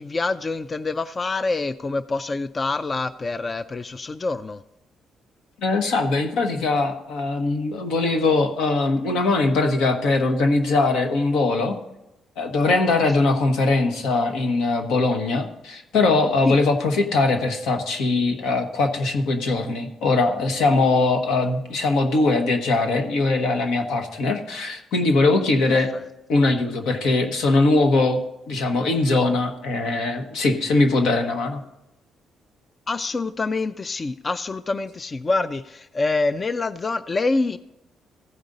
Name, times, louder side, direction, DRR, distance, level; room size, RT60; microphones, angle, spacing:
voice 1, 0.0-4.6 16.4-16.6 25.7-26.0 32.9-37.6, left 3 dB, 30° left, 14 dB, 0.3 m, -26 dB
voice 2, 5.6-11.8 12.4-25.9 26.3-28.2 28.5-31.6, left 3 dB, 85° left, 5 dB, 1.2 m, -21 dB
15.0 x 5.2 x 3.9 m, 0.89 s
cardioid pair, 90°, 0 cm